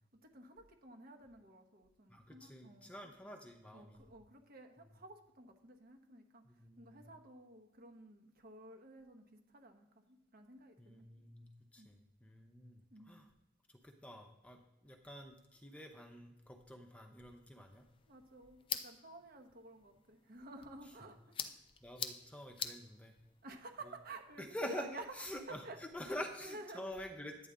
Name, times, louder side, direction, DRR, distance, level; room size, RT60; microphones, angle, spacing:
voice 1, 0.1-3.1 3.7-11.1 11.8-11.9 12.9-13.2 18.1-21.6 23.4-25.0 25.3-25.8 26.0-26.9, right 2 dB, 55° right, 4 dB, 1.1 m, -53 dB
voice 2, 2.1-4.1 6.4-7.0 10.8-13.3 13.8-17.9 21.8-23.1 24.4-24.9 25.2-25.6 25.9-27.5, left 1 dB, 5° left, 3 dB, 0.8 m, -47 dB
sound 1, 17.7-25.6, left 7 dB, 30° left, 0.5 m, -48 dB
9.8 x 9.0 x 3.7 m, 0.89 s
head